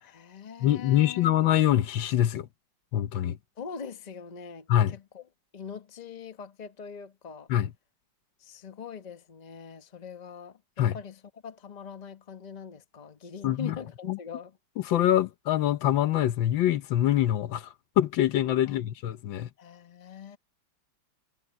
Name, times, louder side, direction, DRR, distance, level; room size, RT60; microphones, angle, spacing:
voice 1, 0.0-1.3 3.6-5.2 5.5-7.5 8.4-14.6 18.6-18.8 19.6-20.4, left 6 dB, 25° left, 1.0 m, -43 dB
voice 2, 0.6-2.5 2.9-3.4 4.7-4.9 7.5-7.7 10.8-11.0 13.4-13.8 14.1-14.2 14.8-19.5, left 12 dB, 80° left, 1.5 m, -24 dB
omnidirectional pair, 2.1 m